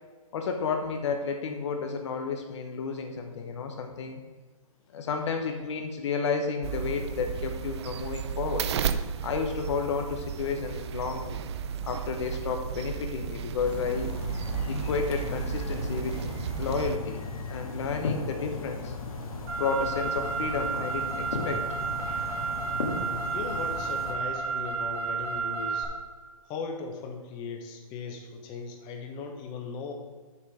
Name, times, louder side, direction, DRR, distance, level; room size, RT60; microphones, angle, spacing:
voice 1, 0.3-4.2 4.9-8.7 9.2-11.4 11.8-14.1 14.7-16.2 16.6-17.2 17.5-18.9 19.6-21.6, left 5 dB, 50° left, 4 dB, 0.9 m, -31 dB
sound 1, 6.6-17.0, right 7 dB, 50° right, 0.5 m, -34 dB
sound 2, 13.6-24.1, left 3 dB, 70° left, 1.9 m, -36 dB
Car, 19.5-25.8, right 5 dB, 15° right, 1.9 m, -32 dB
voice 2, 23.3-25.9 26.5-29.9, left 5 dB, 25° left, 3 dB, 1.2 m, -38 dB
7.4 x 7.1 x 4.8 m, 1.4 s
hypercardioid pair, 145°, 19 cm